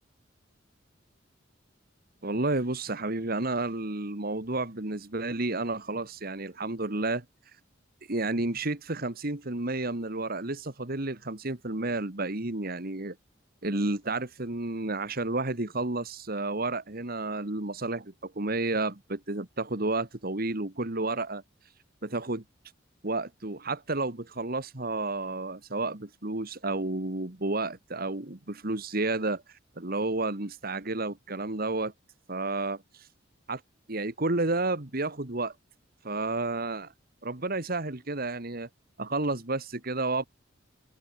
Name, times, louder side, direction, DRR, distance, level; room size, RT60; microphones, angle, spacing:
voice 1, 2.2-7.2 8.1-13.2 13.6-21.4 22.0-22.4 23.0-31.9 32.3-33.1 33.5-33.6 33.9-35.6 36.0-36.9 37.2-38.7 39.0-40.3, right 2 dB, 50° right, 2.0 m, -31 dB
open air
head